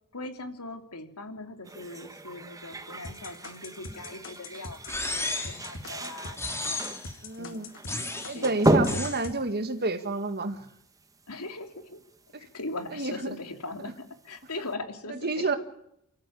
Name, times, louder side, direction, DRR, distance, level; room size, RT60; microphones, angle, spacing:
voice 1, 0.1-7.0 7.4-7.6 8.3-8.5 8.9-9.0 11.3-12.0 12.4-15.6, left 2 dB, 85° left, 7 dB, 2.9 m, -40 dB
sound 1, 1.6-11.4 11.8-11.9 12.4-12.8 13.2-13.3, right 1 dB, 15° right, 1.5 m, -32 dB
sound 2, 3.0-8.0 8.2-9.4, left 3 dB, 60° left, 2.6 m, -42 dB
sound 3, 4.9-5.7 6.4-7.1 7.9-8.4 8.9-9.2, left 2 dB, 10° left, 3.1 m, -33 dB
voice 2, 7.2-7.7 8.2-10.7 12.3-12.5 12.9-13.4 15.1-15.6, right 3 dB, 45° right, 9 dB, 2.0 m, -30 dB
27.5 x 14.0 x 8.7 m, 0.77 s
head